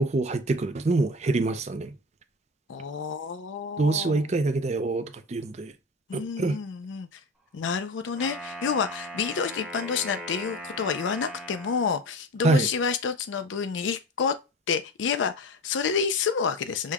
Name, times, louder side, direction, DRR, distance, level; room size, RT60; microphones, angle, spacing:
voice 1, 0.0-1.9 3.8-5.7 6.1-6.6 12.4-12.7, right 3 dB, 35° right, 0.4 m, -25 dB
voice 2, 2.7-4.3 6.1-7.2 7.5-14.4 14.7-16.9, left 6 dB, 75° left, 0.4 m, -29 dB
Wind instrument woodwind instrument, 8.1-12.1, right 1 dB, 5° right, 0.9 m, -39 dB
6.4 x 2.2 x 3.5 m
head